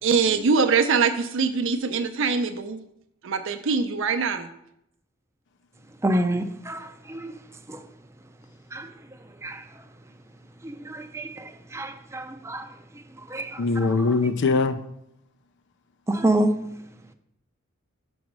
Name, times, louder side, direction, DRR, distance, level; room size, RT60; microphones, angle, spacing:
voice 1, 0.0-2.8 3.2-4.5, right 5 dB, 65° right, 0.5 m, -23 dB
voice 2, 6.0-7.4 7.7-7.9 8.7-9.8 10.6-14.1 16.1-16.5, right 1 dB, 15° right, 0.5 m, -29 dB
voice 3, 13.6-14.8, left 4 dB, 55° left, 0.5 m, -22 dB
6.2 x 4.1 x 6.1 m
head